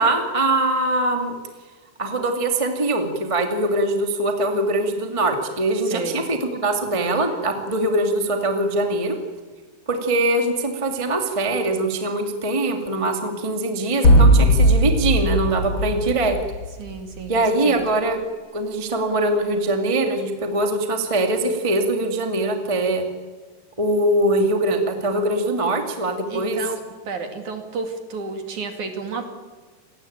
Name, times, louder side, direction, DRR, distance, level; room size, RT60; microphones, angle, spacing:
voice 1, 0.0-1.3 2.0-9.2 9.9-16.4 17.3-18.2 18.5-23.0 23.8-26.6, right 2 dB, 15° right, 4 dB, 1.1 m, -22 dB
voice 2, 5.9-6.2 16.8-17.9 26.3-26.8 27.1-29.3, right 4 dB, 45° right, 6 dB, 3.2 m, -31 dB
sound 1, 14.0-16.9, equal, 80° left, 1.1 m, -17 dB
28.5 x 20.5 x 9.0 m, 1.4 s
omnidirectional pair, 5.5 m